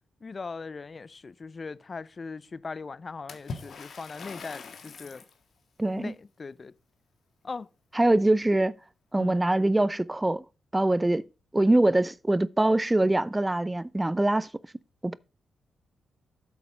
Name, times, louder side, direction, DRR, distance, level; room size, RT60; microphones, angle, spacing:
voice 1, 0.2-5.2 5.9-6.7 7.4-7.7 9.2-9.4, left 4 dB, 45° left, 0.5 m, -39 dB
Water / Splash splatter, 3.3-5.4, left 4 dB, 60° left, 1.6 m, -42 dB
voice 2, 5.8-6.1 8.0-8.7 9.1-10.4 10.7-11.3 11.5-14.5 15.0-15.2, right 1 dB, 20° right, 0.5 m, -23 dB
8.3 x 7.1 x 4.9 m
supercardioid pair, 45°, 0 cm